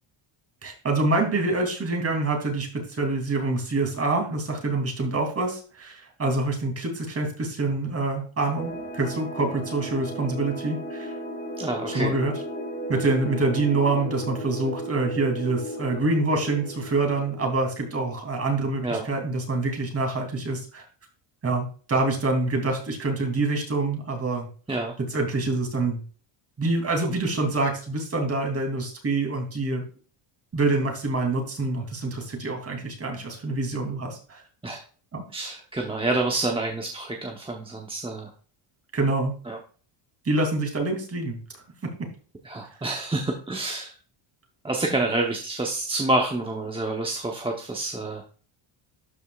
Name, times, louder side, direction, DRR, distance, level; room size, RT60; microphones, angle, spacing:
voice 1, 0.6-11.1 11.9-12.3 12.9-20.8 21.4-24.5 25.1-26.0 26.6-29.8 30.5-34.4 35.1-35.2 38.9-39.3 40.2-41.4 41.8-41.9, right 2 dB, 30° right, 3 dB, 2.9 m, -26 dB
sound 1, 8.6-17.9, right 1 dB, 15° left, 1.9 m, -35 dB
voice 2, 11.6-12.1 18.8-19.1 24.7-24.9 34.6-34.8 35.3-38.3 39.5-39.6 42.4-43.9 44.6-48.2, right 2 dB, 10° right, 1 dB, 0.9 m, -28 dB
12.5 x 5.4 x 2.4 m, 0.39 s
cardioid pair, 145°, 50 cm